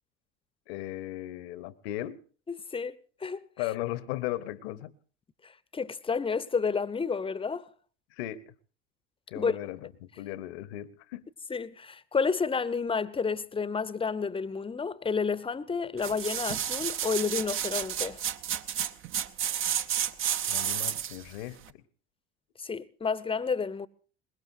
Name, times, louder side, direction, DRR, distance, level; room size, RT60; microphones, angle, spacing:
voice 1, 0.7-2.2 3.6-4.9 8.1-8.5 9.3-11.2 20.5-21.8, left 14 dB, 60° left, 1.0 m, -37 dB
voice 2, 2.5-2.9 3.2-3.4 5.7-7.6 9.4-9.6 11.5-18.2 22.6-23.9, left 5 dB, 15° left, 0.8 m, -30 dB
sound 1, 16.0-21.2 21.7-21.8, right 9 dB, 35° right, 0.8 m, -31 dB
22.5 x 20.5 x 2.6 m
figure-of-eight pair, 65°, 34 cm